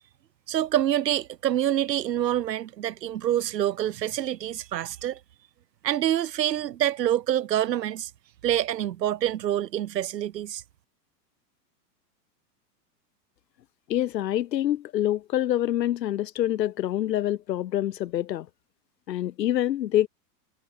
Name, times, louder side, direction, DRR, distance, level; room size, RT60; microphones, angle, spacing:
voice 1, 0.5-5.2 5.8-8.1 8.4-10.6, right 12 dB, 80° right, 7.0 m, -26 dB
voice 2, 13.9-18.5 19.1-20.1, left 12 dB, 85° left, 1.7 m, -26 dB
supercardioid pair, 150°, 49 cm